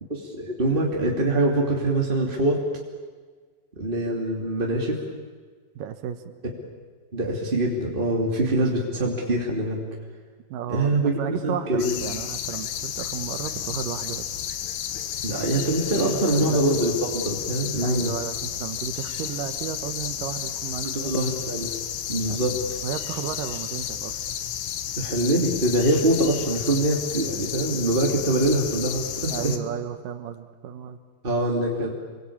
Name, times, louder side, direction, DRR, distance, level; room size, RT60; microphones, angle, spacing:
voice 1, 0.1-2.6 3.8-5.0 6.4-6.5 7.1-9.8 10.7-12.0 15.2-18.1 20.8-21.7 22.1-22.6 25.0-29.5 31.2-31.9, right 1 dB, 20° right, -1 dB, 1.6 m, -24 dB
voice 2, 5.8-6.4 8.3-8.4 10.5-14.3 15.9-16.7 17.8-21.2 22.3-22.4 22.8-24.2 29.3-31.0, right 9 dB, 70° right, 9 dB, 2.1 m, -33 dB
sound 1, 11.8-29.6, left 10 dB, 85° left, 3.7 m, -32 dB
28.5 x 24.0 x 8.6 m, 1.5 s
omnidirectional pair, 5.3 m